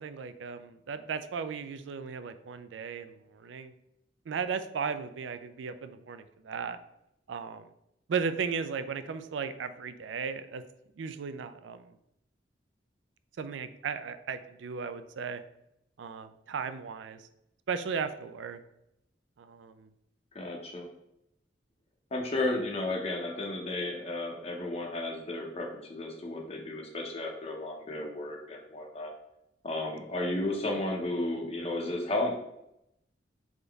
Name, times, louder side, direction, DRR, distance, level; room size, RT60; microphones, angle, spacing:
voice 1, 0.0-3.7 4.3-6.8 7.3-7.7 8.1-10.6 11.0-12.0 13.4-15.4 16.0-17.3 17.7-18.6 19.4-19.9, right 6 dB, 85° right, 11 dB, 0.4 m, -36 dB
voice 2, 20.3-20.9 22.1-29.1 29.6-32.4, left 2 dB, 35° left, 0 dB, 0.6 m, -33 dB
3.9 x 3.6 x 3.4 m, 0.81 s
head